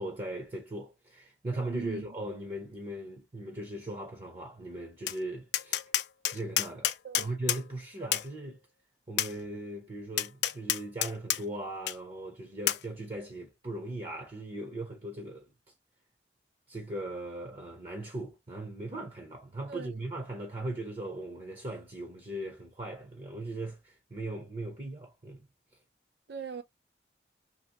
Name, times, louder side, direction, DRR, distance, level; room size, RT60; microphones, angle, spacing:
voice 1, 0.0-5.8 6.3-6.9 7.2-8.6 9.1-15.5 16.7-25.4, right 1 dB, 35° right, 0.6 m, -39 dB
voice 2, 1.7-2.1 7.0-7.4 8.0-8.1 19.7-20.0 26.3-26.6, right 5 dB, 75° right, 0.6 m, -40 dB
Tap, 5.1-5.2 5.5-7.6 8.1-8.3 9.2-9.3 10.2-11.4 11.9-12.0 12.7-12.8, left 12 dB, 75° left, 0.4 m, -29 dB
2.9 x 2.7 x 2.8 m
head